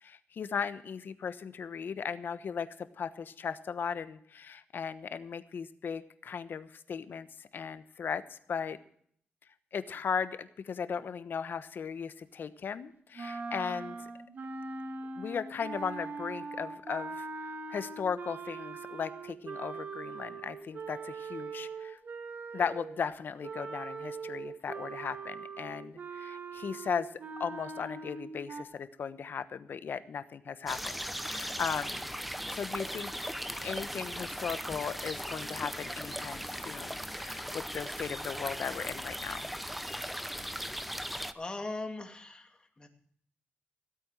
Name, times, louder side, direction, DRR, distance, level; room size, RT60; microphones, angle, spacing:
voice 1, 0.0-8.8 9.7-14.1 15.2-22.0 22.5-27.1 27.4-32.1 32.5-33.1 33.6-39.5, left 6 dB, 60° left, 13 dB, 1.1 m, -37 dB
sound 1, 13.2-23.0 23.4-28.6, right 4 dB, 55° right, 1.7 m, -41 dB
sound 2, 30.7-41.3, equal, ahead, 0.9 m, -38 dB
voice 2, 41.3-42.9, left 2 dB, 20° left, 5 dB, 2.4 m, -40 dB
16.5 x 8.8 x 7.5 m, 0.62 s
wide cardioid pair, 110°, 4 cm